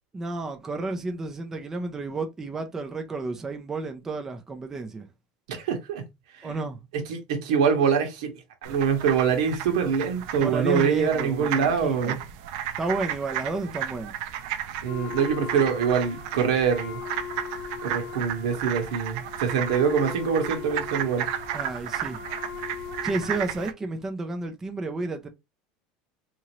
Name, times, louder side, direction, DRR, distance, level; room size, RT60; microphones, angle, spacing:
voice 1, 0.1-5.1 6.4-6.8 10.4-12.2 12.8-14.1 21.5-22.2 23.0-25.3, right 3 dB, 10° right, 0.5 m, -31 dB
voice 2, 5.5-6.0 6.4-6.5 6.9-8.3 8.6-12.2 14.8-17.0 17.8-21.3, right 6 dB, 85° right, 1.2 m, -24 dB
sound 1, 8.6-23.7, right 10 dB, 60° right, 0.5 m, -34 dB
Wind instrument woodwind instrument, 14.8-23.7, left 8 dB, 35° left, 0.9 m, -39 dB
3.7 x 2.9 x 3.0 m
cardioid pair, 170°, 3 cm